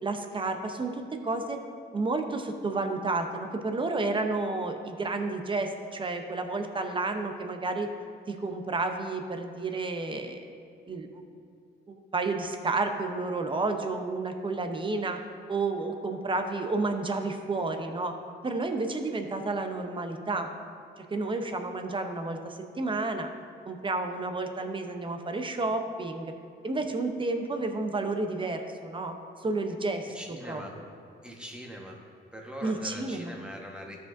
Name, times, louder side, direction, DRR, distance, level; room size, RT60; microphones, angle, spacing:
voice 1, 0.0-1.6 1.9-7.9 8.3-10.4 10.9-11.2 11.9-15.2 15.5-18.1 18.4-20.5 21.0-23.3 23.7-26.3 26.6-30.6 32.6-33.3, right 3 dB, 25° right, 6 dB, 0.7 m, -31 dB
voice 2, 30.1-30.7 31.2-32.0 32.3-34.1, equal, 5° right, -1 dB, 1.3 m, -42 dB
13.0 x 5.1 x 2.6 m, 2.4 s
cardioid pair, 90°, 20 cm